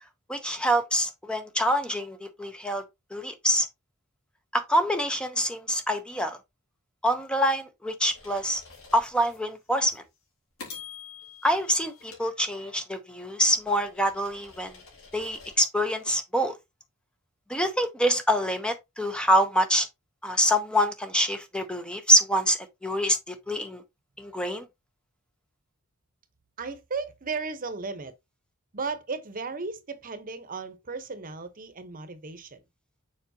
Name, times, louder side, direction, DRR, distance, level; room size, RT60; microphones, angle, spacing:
voice 1, 0.3-2.8 3.1-3.7 4.5-6.4 7.0-8.6 8.9-10.0 11.4-14.8 15.1-16.6 17.5-19.9 20.2-23.8 24.2-24.6, equal, 5° left, 0.7 m, -25 dB
sound 1, 8.1-9.4 9.9-10.1 10.6-13.0 13.5-15.6, left 5 dB, 85° left, 3.7 m, -47 dB
voice 2, 26.6-28.1 28.7-32.6, right 4 dB, 40° right, 0.9 m, -35 dB
7.0 x 4.8 x 2.8 m
head